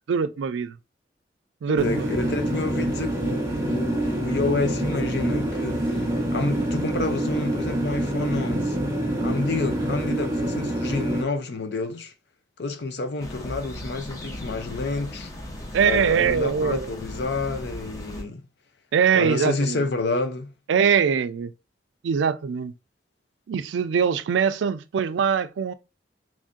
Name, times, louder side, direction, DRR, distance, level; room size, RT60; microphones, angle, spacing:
voice 1, 0.1-0.8 1.6-2.2 15.7-16.9 18.9-19.8 20.7-21.5 22.0-22.7 23.5-25.7, right 7 dB, 80° right, 0.3 m, -22 dB
voice 2, 1.7-6.1 6.3-8.8 9.2-12.1 12.6-15.3 15.8-18.4 19.1-20.5, left 3 dB, 65° left, 0.6 m, -29 dB
sound 1, 1.8-11.2, right 1 dB, 15° right, 0.8 m, -26 dB
sound 2, 13.2-18.2, left 1 dB, 20° left, 0.7 m, -37 dB
3.1 x 2.6 x 3.6 m
head